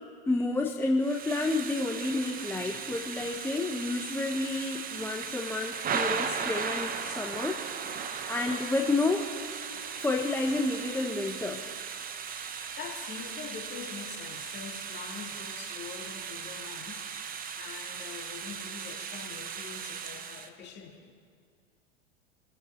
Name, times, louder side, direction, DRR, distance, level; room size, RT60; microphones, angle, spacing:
voice 1, 0.3-7.6 8.3-9.2 10.0-11.6, left 2 dB, 5° left, 1 dB, 0.8 m, -30 dB
Thunder / Rain, 1.0-20.5, right 6 dB, 25° right, 1.0 m, -37 dB
voice 2, 12.8-17.1 17.5-21.1, left 6 dB, 35° left, -2 dB, 2.9 m, -44 dB
26.5 x 12.5 x 2.9 m, 2.1 s
hypercardioid pair, 100°, 33 cm